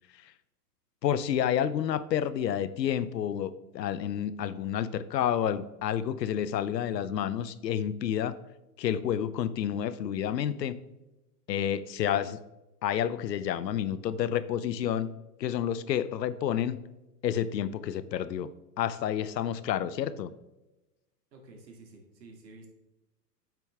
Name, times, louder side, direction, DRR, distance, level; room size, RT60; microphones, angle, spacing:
voice 1, 1.0-8.3 8.8-10.8 11.5-12.4 12.8-15.1 15.4-16.8 17.2-18.5 18.8-20.3, left 9 dB, 85° left, 15 dB, 0.7 m, -29 dB
voice 2, 21.3-22.7, right 3 dB, 80° right, 2 dB, 2.5 m, -51 dB
8.5 x 6.1 x 3.4 m, 1.0 s
hypercardioid pair, 120°, 49 cm